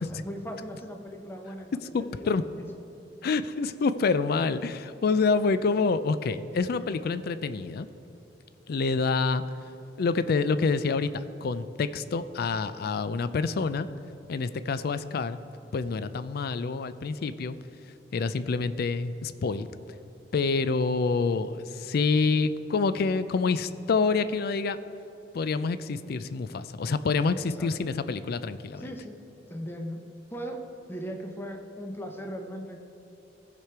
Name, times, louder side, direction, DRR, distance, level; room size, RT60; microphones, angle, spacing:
voice 1, 0.0-2.7 27.3-27.7 28.8-29.2 29.5-30.0 30.3-32.8, equal, 15° left, 3 dB, 0.8 m, -39 dB
voice 2, 1.9-2.4 3.2-7.9 8.7-9.4 10.0-13.9 14.3-15.4 15.7-17.6 18.1-19.7 20.3-24.8 25.3-28.8, left 4 dB, 60° left, 13 dB, 0.4 m, -27 dB
15.0 x 5.1 x 4.6 m, 3.0 s
head